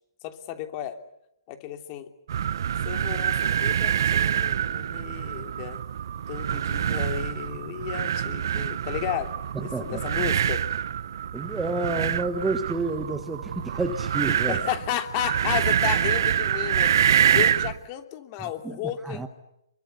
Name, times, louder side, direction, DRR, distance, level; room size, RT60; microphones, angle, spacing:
voice 1, 0.2-1.0 1.5-2.1 2.8-5.8 6.3-10.6 14.5-16.9 17.3-19.3, left 11 dB, 30° left, 7 dB, 3.0 m, -33 dB
sound 1, 2.3-17.8, right 9 dB, 55° right, 1.0 m, -26 dB
voice 2, 9.5-10.0 11.3-14.6 18.4-19.3, right 3 dB, 5° right, 7 dB, 1.7 m, -30 dB
27.5 x 23.5 x 8.2 m, 0.80 s
hypercardioid pair, 150°, 2 cm